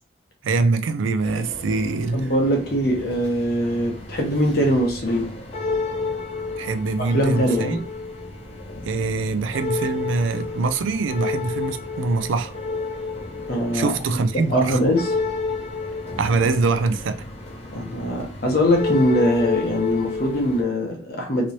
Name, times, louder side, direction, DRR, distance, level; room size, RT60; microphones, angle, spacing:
voice 1, 0.4-2.3 6.6-7.8 8.8-12.5 13.7-14.8 16.2-17.2, right 3 dB, 80° right, 0.4 m, -23 dB
sound 1, 1.2-20.6, left 3 dB, 30° left, 0.7 m, -31 dB
voice 2, 2.1-5.4 7.1-7.8 13.5-14.0 14.3-15.1 17.7-21.5, equal, 50° left, 1.0 m, -22 dB
3.0 x 3.0 x 2.6 m
head